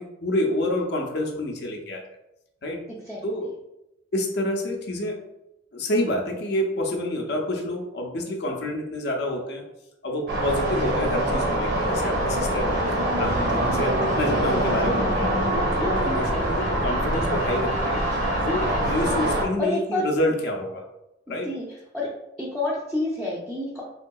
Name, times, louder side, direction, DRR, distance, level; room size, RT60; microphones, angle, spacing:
voice 1, 0.0-2.0 2.6-2.8 3.2-3.6 4.1-5.2 5.7-9.6 10.0-12.8 13.2-15.3 15.7-18.0 18.4-20.9 21.3-21.5, left 1 dB, 60° left, 1 dB, 0.5 m, -28 dB
sound 1, 10.3-19.5, right 1 dB, 60° right, 0.7 m, -24 dB
sound 2, 12.3-18.8, equal, 35° left, 0.9 m, -42 dB
voice 2, 13.7-14.0 19.0-19.2 19.6-20.1 21.4-21.6 21.9-22.1 22.4-23.8, left 2 dB, ahead, -6 dB, 0.4 m, -28 dB
3.6 x 2.7 x 2.3 m, 0.88 s
head